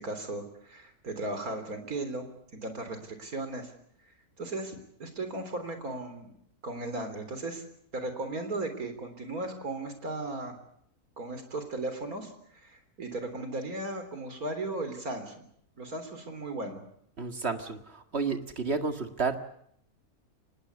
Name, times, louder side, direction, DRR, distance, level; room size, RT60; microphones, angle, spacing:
voice 1, 0.0-3.7 4.4-6.3 6.6-7.6 7.9-10.6 11.2-12.3 12.6-15.5 15.8-16.8, right 2 dB, 70° right, 8 dB, 4.1 m, -36 dB
voice 2, 17.2-19.4, right 4 dB, 45° right, 7 dB, 2.2 m, -31 dB
25.0 x 20.0 x 8.2 m, 0.70 s
omnidirectional pair, 1.6 m